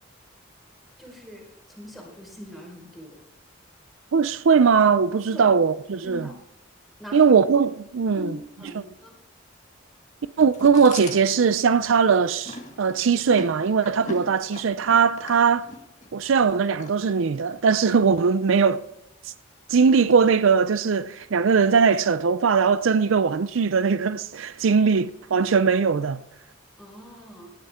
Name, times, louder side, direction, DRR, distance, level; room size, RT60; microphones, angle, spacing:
voice 1, 1.0-3.2 5.3-5.5 6.0-6.3 7.0-7.4 8.1-8.3 8.6-9.2 26.8-27.5, left 1 dB, ahead, 4.7 m, -42 dB
voice 2, 4.1-6.2 7.1-8.3 8.7-8.8 10.4-15.7 16.1-18.8 19.2-19.3 19.7-26.2, right 5 dB, 70° right, 0.5 m, -20 dB
Chewing mastication, 10.5-17.6, left 2 dB, 35° left, 2.0 m, -41 dB
18.0 x 12.0 x 3.7 m
head